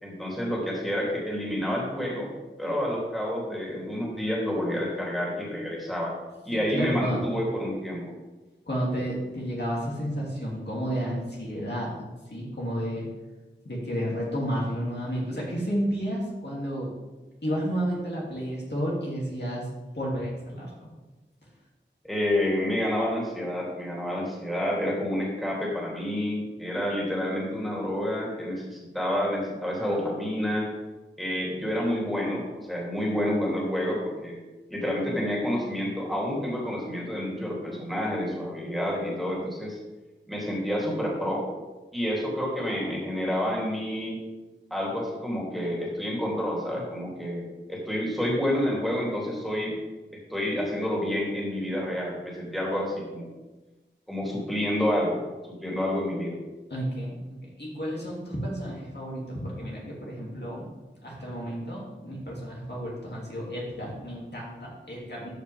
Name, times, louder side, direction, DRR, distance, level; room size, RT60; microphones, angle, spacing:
voice 1, 0.0-2.3 2.6-6.1 6.4-8.0 22.0-30.7 31.2-34.4 34.7-39.8 40.3-41.4 41.9-44.2 44.7-49.7 50.1-53.3 54.1-55.2 55.5-56.4, left 1 dB, ahead, -4 dB, 3.0 m, -29 dB
voice 2, 6.5-7.2 8.7-13.1 13.6-16.9 17.4-19.7 19.9-20.9 56.7-60.7 61.0-65.3, equal, 60° left, -5 dB, 2.6 m, -31 dB
13.5 x 5.3 x 3.5 m, 1.2 s
wide cardioid pair, 40°, 20 cm